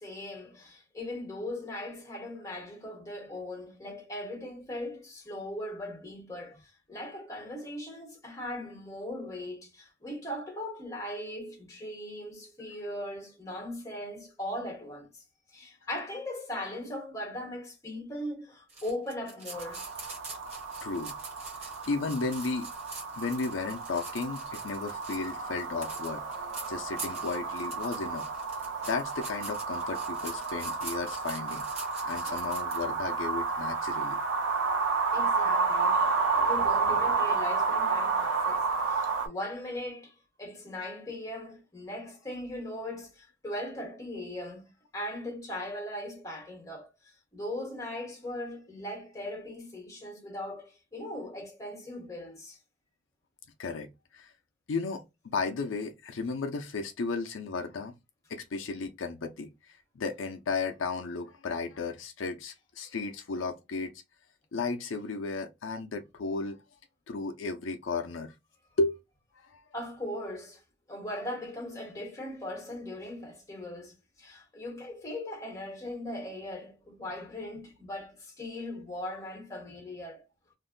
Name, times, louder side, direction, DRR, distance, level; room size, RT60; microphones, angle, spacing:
voice 1, 0.0-15.2 15.5-19.8 32.3-32.4 35.1-40.1 40.4-44.6 44.9-46.9 47.3-52.6 69.7-70.6 70.9-80.3, left 1 dB, 15° left, 1.1 m, -39 dB
sound 1, 18.7-32.8, right 3 dB, 35° right, 1.1 m, -45 dB
sound 2, 19.5-39.3, right 4 dB, 80° right, 0.7 m, -31 dB
voice 2, 20.8-21.1 21.6-22.7 23.2-26.2 26.7-28.3 28.9-31.6 32.0-34.2 53.6-54.3 54.7-57.9 58.3-63.9 64.5-66.6 67.1-68.3 68.8-69.0 69.3-69.6, left 4 dB, 85° left, 0.5 m, -34 dB
2.6 x 2.1 x 3.7 m
head